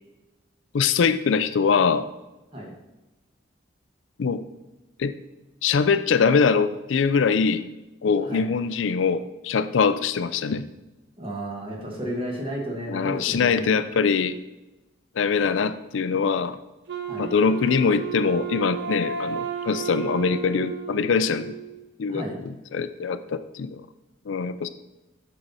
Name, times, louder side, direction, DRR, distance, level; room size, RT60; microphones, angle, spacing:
voice 1, 0.7-2.1 4.2-4.4 5.0-5.1 5.6-7.6 8.0-10.6 12.9-14.4 15.2-16.6 17.2-21.5 22.0-22.2 22.7-23.8 24.3-24.7, left 5 dB, 80° left, 12 dB, 0.4 m, -23 dB
voice 2, 11.2-13.8 17.0-17.3 22.1-22.4, right 1 dB, 30° right, 0 dB, 1.5 m, -33 dB
Wind instrument woodwind instrument, 16.9-21.9, right 7 dB, 65° right, 0.8 m, -33 dB
7.8 x 5.6 x 4.1 m, 1.1 s
head